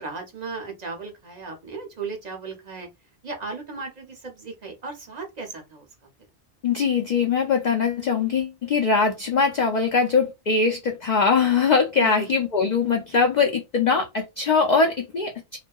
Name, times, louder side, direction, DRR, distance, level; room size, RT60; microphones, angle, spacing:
voice 1, 0.0-2.9 3.2-5.9 12.0-12.3, right 4 dB, 45° right, 0.6 m, -36 dB
voice 2, 6.6-15.6, left 5 dB, 60° left, 0.4 m, -22 dB
2.6 x 2.3 x 2.2 m
omnidirectional pair, 1.2 m